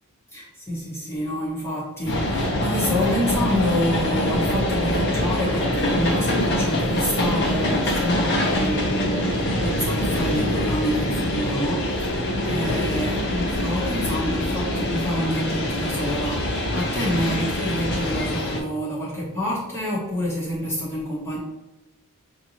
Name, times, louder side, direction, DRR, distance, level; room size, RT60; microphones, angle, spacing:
voice 1, 0.3-21.4, left 1 dB, 10° left, -7 dB, 1.0 m, -28 dB
sound 1, 2.1-18.6, left 1 dB, 50° left, 0.9 m, -24 dB
6.1 x 2.7 x 2.9 m, 1.0 s
head